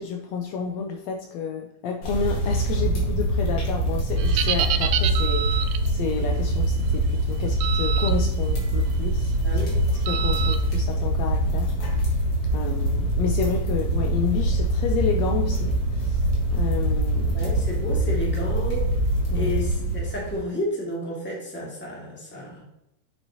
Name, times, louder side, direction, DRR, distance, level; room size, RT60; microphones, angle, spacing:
voice 1, 0.0-9.3 10.0-11.7 12.0-12.1 12.5-16.2 16.5-17.5 19.3-19.5, left 6 dB, 75° left, 2 dB, 1.7 m, -30 dB
sound 1, 2.0-20.4, right 1 dB, 55° left, 2.5 m, -24 dB
sound 2, 4.2-5.9 7.6-8.1 8.6-8.8 10.1-10.6, right 10 dB, 85° right, 2.1 m, -27 dB
voice 2, 9.4-9.8 17.3-18.9 19.3-22.6, equal, 5° left, -4 dB, 1.6 m, -31 dB
7.6 x 6.2 x 2.9 m, 0.86 s
omnidirectional pair, 3.4 m